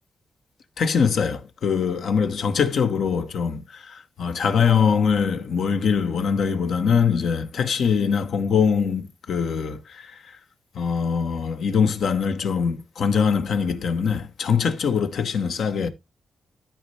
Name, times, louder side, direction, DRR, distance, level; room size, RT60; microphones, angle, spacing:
voice 1, 0.8-10.4 10.7-15.9, left 6 dB, 75° left, 1.1 m, -23 dB
13.0 x 4.4 x 3.2 m
cardioid pair, 110°, 0 cm